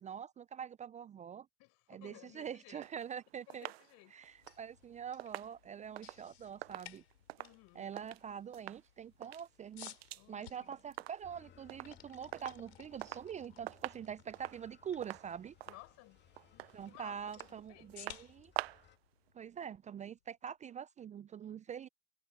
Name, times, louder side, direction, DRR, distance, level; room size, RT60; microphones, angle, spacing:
voice 1, 0.0-1.5 1.9-3.7 4.1-7.0 7.7-9.9 10.3-15.5 16.7-18.5 19.3-21.9, right 8 dB, 25° right, 0.5 m, -45 dB
voice 2, 1.6-2.9 3.5-4.1 7.4-7.9 10.1-10.8 15.6-16.2 16.5-18.1, left 23 dB, 55° left, 5.9 m, -58 dB
sound 1, 2.8-8.2 8.5-8.9 9.1-10.3 10.5-11.4 11.7-12.0 12.3-13.3 13.6-19.0 19.3-19.4, right 17 dB, 75° right, 0.8 m, -47 dB
sound 2, 4.2-20.2, left 11 dB, 85° left, 6.1 m, -59 dB
sound 3, 11.2-19.0, left 9 dB, 35° left, 2.7 m, -65 dB
hypercardioid pair, 90°, 31 cm